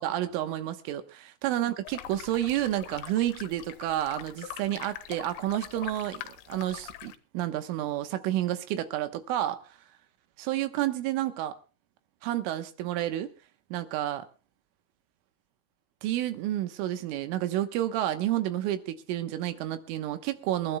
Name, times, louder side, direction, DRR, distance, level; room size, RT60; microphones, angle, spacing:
voice 1, 0.0-9.6 10.4-11.6 12.2-13.3 13.7-14.3 16.0-20.8, right 13 dB, 80° right, 3.6 m, -30 dB
sound 1, 1.9-7.2, left 13 dB, 75° left, 3.0 m, -43 dB
27.5 x 12.0 x 2.2 m
omnidirectional pair, 5.7 m